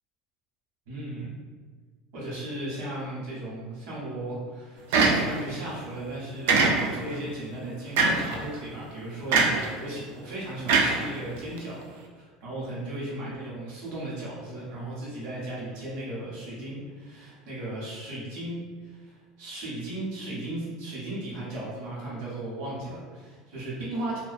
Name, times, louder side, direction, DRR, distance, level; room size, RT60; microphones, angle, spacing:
voice 1, 0.9-1.3 2.1-11.8 12.1-24.2, right 1 dB, 55° right, -6 dB, 0.9 m, -36 dB
sound 1, 4.9-5.6 6.5-7.1 8.0-8.4 9.3-9.7 10.7-11.6, right 4 dB, 85° right, 0.3 m, -22 dB
2.3 x 2.2 x 2.5 m, 1.5 s
cardioid pair, 175°, 0 cm